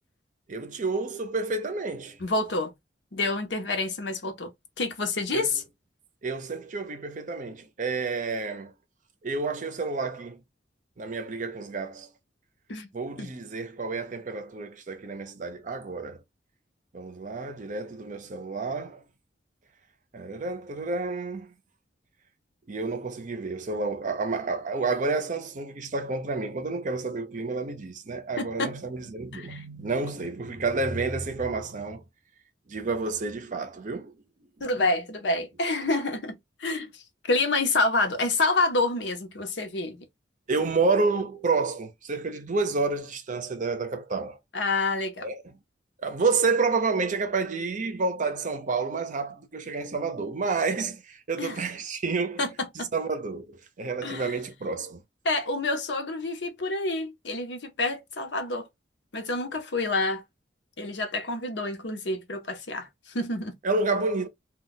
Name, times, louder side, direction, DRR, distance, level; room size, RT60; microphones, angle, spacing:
voice 1, 0.5-2.2 5.3-5.5 6.2-8.7 9.2-10.4 11.0-12.1 12.9-16.2 16.9-19.0 20.1-21.5 22.7-32.0 32.7-34.2 40.5-44.4 45.2-45.5 46.0-52.5 52.7-55.0 63.6-64.3, right 3 dB, 45° right, 0.6 m, -29 dB
voice 2, 2.2-2.7 3.1-4.5 4.8-5.5 12.7-12.9 13.2-13.3 28.4-28.7 29.3-29.6 34.6-36.9 37.3-40.0 44.5-45.3 51.4-51.6 52.4-52.9 54.0-54.3 55.2-58.7 59.1-60.2 60.8-63.5, left 2 dB, 75° left, 0.8 m, -28 dB
2.3 x 2.2 x 3.8 m
head